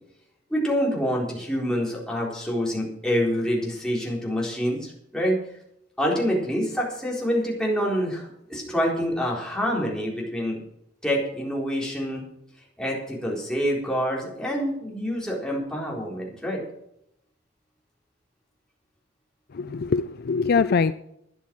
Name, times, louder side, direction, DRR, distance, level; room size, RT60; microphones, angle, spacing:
voice 1, 0.5-5.4 6.0-10.6 11.0-12.2 12.8-16.6, equal, 5° left, -3 dB, 4.1 m, -26 dB
voice 2, 19.5-20.9, left 5 dB, 50° left, 13 dB, 0.4 m, -23 dB
12.5 x 10.0 x 6.2 m, 0.77 s
head